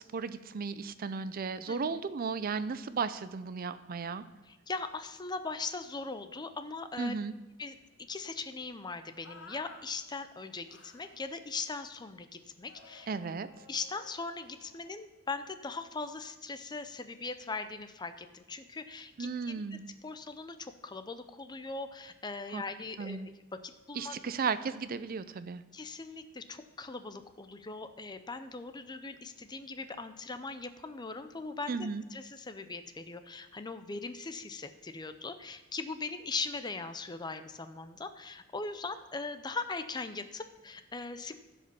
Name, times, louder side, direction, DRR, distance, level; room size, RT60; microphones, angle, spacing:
voice 1, 0.0-4.2 7.0-7.3 13.1-13.5 19.2-19.8 22.5-22.6 23.0-23.3 23.9-25.6 31.7-32.0, right 5 dB, 45° right, 13 dB, 0.4 m, -35 dB
voice 2, 1.7-2.0 4.5-7.1 7.6-7.7 8.1-13.1 13.7-19.6 20.0-24.2 25.7-31.8 32.1-41.4, left 3 dB, 20° left, 10 dB, 0.5 m, -40 dB
sound 1, 9.2-9.8 10.7-11.2 12.7-15.0, left 3 dB, 85° left, 1.4 m, -54 dB
15.0 x 5.0 x 5.5 m, 1.1 s
head